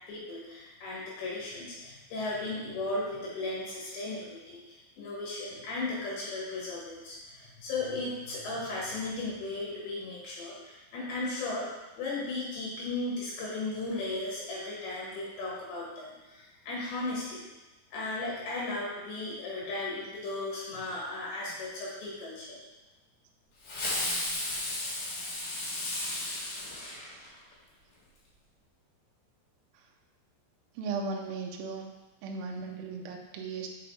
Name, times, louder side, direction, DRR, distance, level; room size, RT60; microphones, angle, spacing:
voice 1, 0.1-11.7 12.0-17.4 17.9-22.6, left 2 dB, 80° left, -5 dB, 3.9 m, -36 dB
Fireworks, 23.6-27.5, left 2 dB, 60° left, 2.9 m, -34 dB
voice 2, 30.8-31.9 32.2-33.7, right 4 dB, 85° right, 1 dB, 2.1 m, -37 dB
7.7 x 5.5 x 3.3 m, 1.1 s
omnidirectional pair, 5.1 m